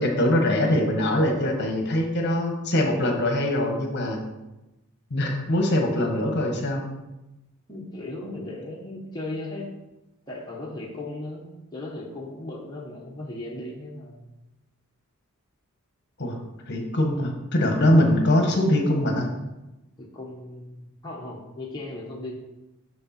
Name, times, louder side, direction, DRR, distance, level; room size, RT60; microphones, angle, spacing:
voice 1, 0.0-4.2 5.1-6.9 16.2-16.4 16.7-19.3, left 1 dB, 50° left, 2 dB, 1.2 m, -22 dB
voice 2, 7.7-9.7 10.3-14.3 20.0-22.4, left 2 dB, 20° left, -3 dB, 1.1 m, -37 dB
6.5 x 6.4 x 4.3 m, 0.99 s
head